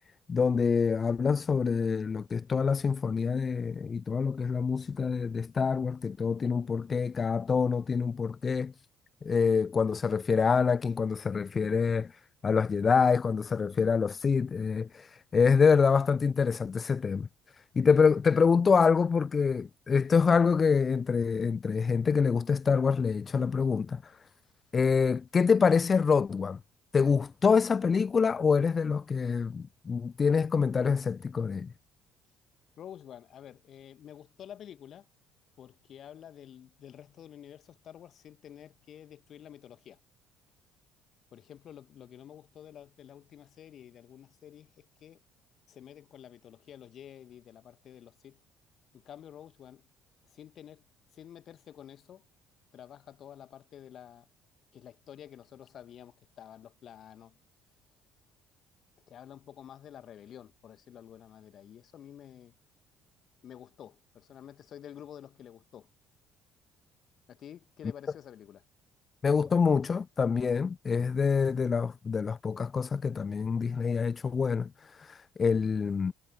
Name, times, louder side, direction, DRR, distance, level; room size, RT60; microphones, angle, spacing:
voice 1, 0.3-8.7 9.2-17.3 17.6-24.2 24.7-26.6 26.9-31.7 69.2-76.1, left 5 dB, 35° left, 0.4 m, -26 dB
voice 2, 32.8-35.1 35.6-40.0 41.3-45.2 45.7-48.4 48.9-49.9 50.2-50.8 51.1-52.2 52.7-54.3 54.7-57.4 59.1-62.5 63.4-65.9 67.3-68.6, left 10 dB, 50° left, 1.5 m, -49 dB
figure-of-eight pair, 50°, 0 cm